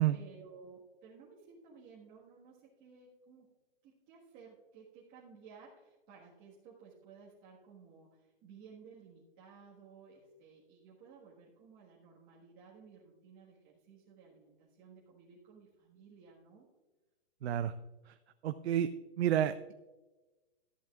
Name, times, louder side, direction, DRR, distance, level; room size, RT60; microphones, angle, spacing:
voice 1, 0.0-3.5 3.8-16.7, right 5 dB, 25° right, -5 dB, 1.6 m, -56 dB
voice 2, 17.4-17.7 18.1-18.2 18.4-18.9 19.2-19.7, right 11 dB, 70° right, 11 dB, 0.6 m, -30 dB
13.5 x 11.0 x 2.4 m, 1.2 s
hypercardioid pair, 155°, 33 cm